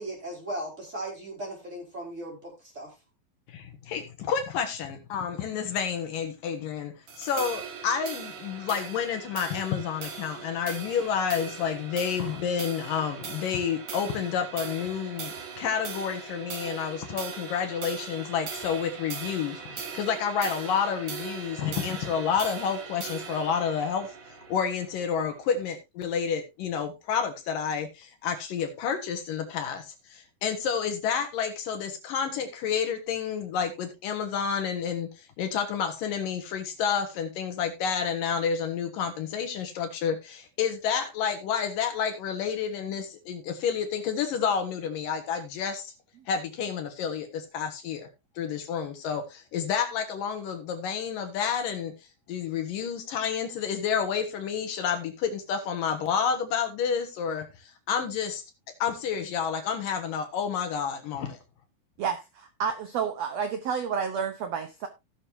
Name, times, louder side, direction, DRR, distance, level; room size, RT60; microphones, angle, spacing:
voice 1, 0.0-2.9, right 1 dB, 20° right, 4.6 m, -37 dB
voice 2, 3.5-45.9 46.3-48.1 48.4-51.9 52.3-58.4 58.8-61.4, left 7 dB, 70° left, 3.0 m, -30 dB
sound 1, 7.1-25.7, right 6 dB, 55° right, 2.9 m, -40 dB
voice 3, 62.0-64.9, right 7 dB, 75° right, 1.5 m, -30 dB
17.5 x 6.5 x 2.7 m
omnidirectional pair, 4.2 m